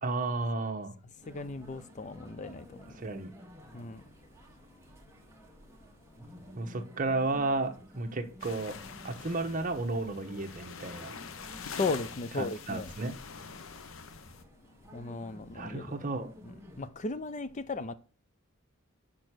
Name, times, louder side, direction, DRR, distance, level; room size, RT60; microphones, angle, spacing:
voice 1, 0.0-0.9 3.0-3.3 6.5-8.8 9.0-11.1 12.4-13.1 15.5-16.3, right 3 dB, 40° right, 1.1 m, -33 dB
sound 1, 1.2-16.9, equal, 15° right, 1.4 m, -53 dB
voice 2, 1.3-2.6 3.7-4.0 11.8-12.9 14.9-15.8 16.8-17.9, left 3 dB, 35° left, 0.5 m, -35 dB
sound 2, 8.4-14.4, left 5 dB, 65° left, 0.7 m, -45 dB
6.5 x 5.4 x 6.1 m
head